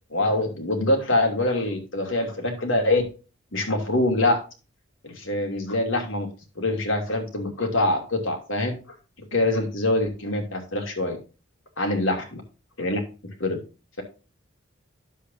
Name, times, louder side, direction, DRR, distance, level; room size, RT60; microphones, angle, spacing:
voice 1, 0.1-3.0 3.5-4.4 5.0-6.3 6.6-8.7 9.3-11.2 11.8-12.4 12.8-13.0 13.4-13.6, left 2 dB, 80° left, 3 dB, 2.7 m, -24 dB
10.0 x 7.6 x 2.7 m, 0.32 s
head